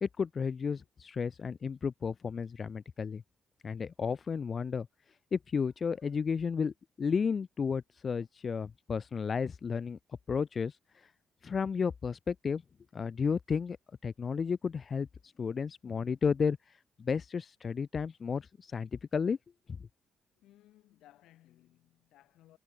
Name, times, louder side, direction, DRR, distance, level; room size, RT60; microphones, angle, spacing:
voice 1, 0.0-3.2 3.6-4.9 5.3-10.0 10.3-11.1 11.4-12.6 12.9-13.8 14.0-19.4 19.7-19.8, left 6 dB, 40° left, 0.6 m, -33 dB
voice 2, 20.4-22.6, left 14 dB, 85° left, 6.4 m, -61 dB
cardioid pair, 90°, 0 cm